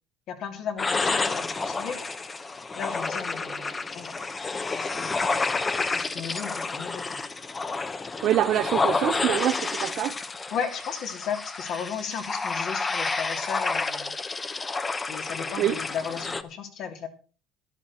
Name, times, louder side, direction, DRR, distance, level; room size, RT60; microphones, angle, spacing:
voice 1, 0.3-2.1 2.8-4.1 4.7-5.3 5.9-7.2 10.5-14.1 15.1-17.1, left 7 dB, 60° left, 3.0 m, -35 dB
sound 1, 0.8-16.4, left 3 dB, 20° left, 1.0 m, -30 dB
voice 2, 8.2-10.2 15.6-15.8, right 12 dB, 60° right, 0.7 m, -25 dB
12.5 x 12.5 x 4.4 m
cardioid pair, 125°, 0 cm